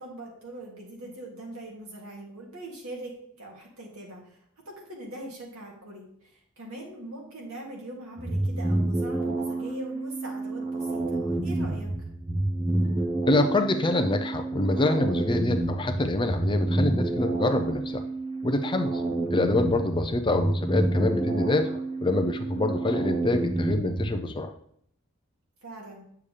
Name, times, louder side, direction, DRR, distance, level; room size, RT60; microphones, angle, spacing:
voice 1, 0.0-4.4 4.7-12.1 19.1-19.4 25.6-26.0, right 1 dB, 70° right, -2 dB, 2.6 m, -42 dB
sound 1, 8.2-24.2, right 2 dB, 25° right, 0.8 m, -29 dB
voice 2, 13.3-18.0 18.4-19.0 19.3-24.5, left 2 dB, 20° left, 6 dB, 0.5 m, -26 dB
8.6 x 6.9 x 3.3 m, 0.68 s
head